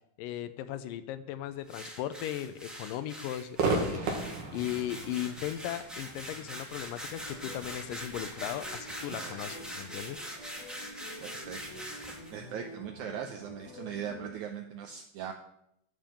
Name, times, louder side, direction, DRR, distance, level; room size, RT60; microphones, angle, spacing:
voice 1, 0.2-4.2 4.5-10.2, left 12 dB, 75° left, 11 dB, 2.2 m, -37 dB
sound 1, 1.7-12.3, equal, ahead, 0.4 m, -43 dB
Crowd / Fireworks, 3.6-10.9, right 3 dB, 65° right, 3.2 m, -37 dB
sound 2, 7.1-14.3, equal, 25° left, 3.3 m, -48 dB
voice 2, 9.1-9.4 11.2-11.9 12.3-15.3, right 8 dB, 80° right, 5 dB, 1.7 m, -40 dB
12.0 x 5.5 x 7.6 m, 0.77 s
omnidirectional pair, 4.2 m